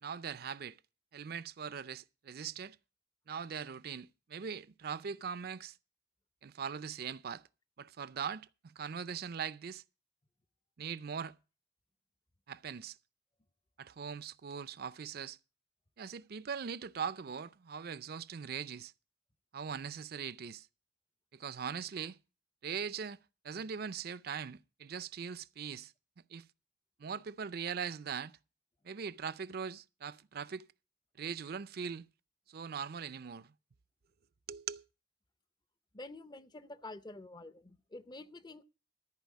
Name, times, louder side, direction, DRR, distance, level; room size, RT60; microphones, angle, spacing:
voice 1, 0.0-0.8 1.1-2.8 3.3-5.8 6.4-7.4 7.8-9.8 10.8-11.3 12.5-13.0 13.8-15.4 16.0-18.9 19.5-20.7 21.3-22.2 22.6-23.2 23.4-25.9 26.3-26.5 27.0-28.4 28.8-30.7 31.2-32.1 32.5-33.5 34.5-34.8, right 6 dB, 55° right, 0.5 m, -41 dB
voice 2, 35.9-38.6, left 2 dB, 25° left, 0.6 m, -48 dB
14.0 x 4.8 x 8.2 m
head